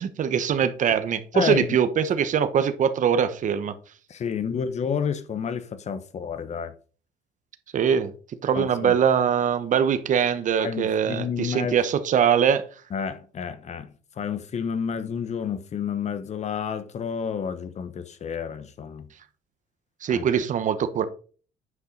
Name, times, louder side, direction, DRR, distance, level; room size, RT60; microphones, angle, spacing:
voice 1, 0.0-3.7 7.7-8.1 8.4-12.6 20.0-21.0, right 8 dB, 50° right, 1.0 m, -22 dB
voice 2, 1.3-1.8 4.1-6.7 8.5-9.0 10.6-11.8 12.9-19.1 20.1-20.2, left 7 dB, 40° left, 1.1 m, -30 dB
9.6 x 5.5 x 3.9 m
cardioid pair, 110°, 17 cm